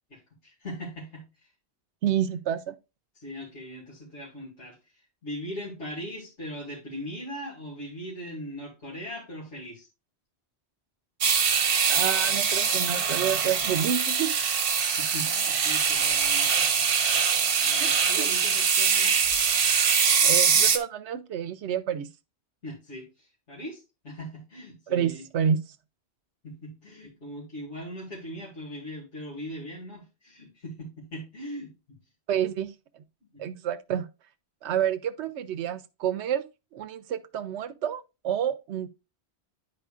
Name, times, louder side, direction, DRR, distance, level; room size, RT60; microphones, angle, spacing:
voice 1, 0.1-1.5 3.1-4.8 5.2-9.9 15.0-16.7 17.2-19.2 22.6-25.3 26.4-32.0 33.3-33.4, equal, 85° left, 2.6 m, -40 dB
voice 2, 2.0-2.7 11.9-14.3 18.2-18.3 20.2-22.1 24.9-25.6 32.3-32.7 33.4-34.1 34.6-36.4 36.7-38.9, right 9 dB, 85° right, 0.9 m, -29 dB
sound 1, 11.2-20.8, right 6 dB, 60° right, 1.0 m, -23 dB
10.5 x 4.8 x 2.4 m
omnidirectional pair, 1.1 m